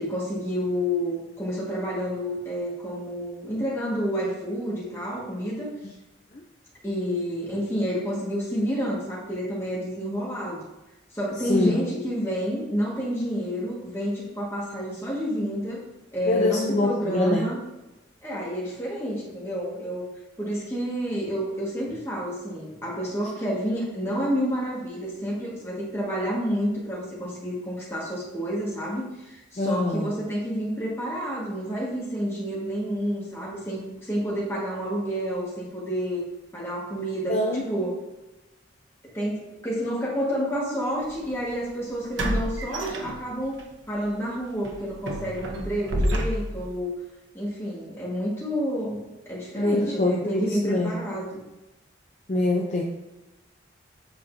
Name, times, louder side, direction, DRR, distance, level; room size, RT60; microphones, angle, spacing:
voice 1, 0.0-5.7 6.8-10.6 11.1-15.8 16.1-17.6 18.2-20.1 20.4-36.2 36.5-38.0 39.1-43.6 43.9-46.9 47.3-51.3, equal, 15° left, -6 dB, 1.7 m, -29 dB
voice 2, 11.5-11.8 16.3-17.5 29.6-30.1 37.3-37.6 49.5-50.9 52.3-52.8, left 2 dB, 35° left, -1 dB, 0.5 m, -24 dB
sound 1, 41.0-41.2 42.2-43.6 44.0-44.2 44.6-46.7, equal, 90° right, 0.8 m, -29 dB
7.9 x 5.2 x 2.7 m, 1.0 s
head